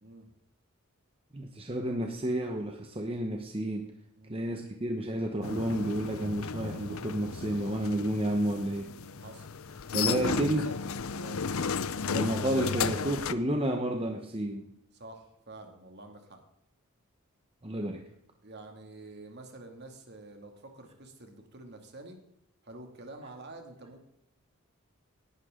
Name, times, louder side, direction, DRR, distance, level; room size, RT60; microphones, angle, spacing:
voice 1, 1.3-3.9 4.3-8.9 9.9-10.7 12.1-14.7 17.6-18.0, right 1 dB, 25° right, 4 dB, 1.0 m, -31 dB
sound 1, 5.4-13.3, left 5 dB, 75° left, 0.7 m, -34 dB
voice 2, 10.0-10.3 10.6-10.7 11.1-11.4 14.9-16.4 18.4-22.2 22.6-24.0, right 2 dB, 50° right, 4 dB, 2.3 m, -48 dB
18.0 x 11.0 x 3.8 m, 0.78 s
head